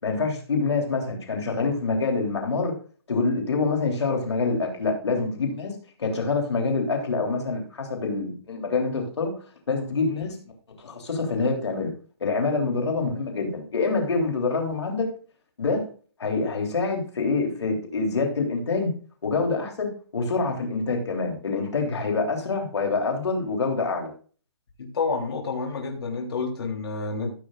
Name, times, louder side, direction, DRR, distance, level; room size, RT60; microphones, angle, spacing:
voice 1, 0.0-2.7 3.1-5.7 6.0-9.4 9.7-10.4 10.8-11.9 12.2-15.1 15.6-15.9 16.2-18.9 19.2-24.1, left 4 dB, 85° left, 2 dB, 3.3 m, -26 dB
voice 2, 24.8-27.3, left 4 dB, 65° left, 0 dB, 3.3 m, -29 dB
15.5 x 8.2 x 2.4 m, 0.41 s
hypercardioid pair, 170°, 14 cm